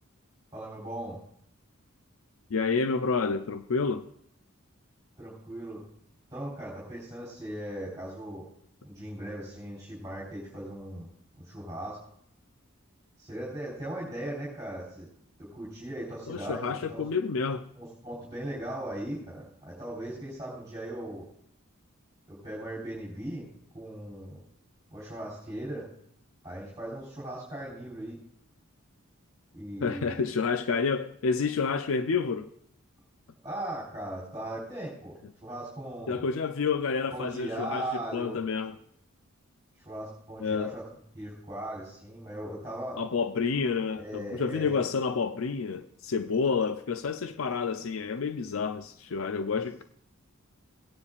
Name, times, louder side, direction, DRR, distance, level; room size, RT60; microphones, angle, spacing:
voice 1, 0.5-1.2 5.2-5.8 6.3-8.5 8.8-11.1 11.4-12.0 13.2-15.1 15.4-17.0 17.8-21.3 22.3-23.5 23.7-24.4 24.9-25.8 26.4-28.2 29.5-30.2 33.4-36.2 37.1-38.4 39.9-40.8 41.1-43.0 43.9-44.8, right 1 dB, 15° right, 3.8 m, -38 dB
voice 2, 2.5-4.1 16.3-17.6 29.8-32.5 36.1-37.9 38.1-38.8 40.4-40.7 43.0-49.8, left 5 dB, 65° left, 0.5 m, -29 dB
18.0 x 9.6 x 2.4 m
head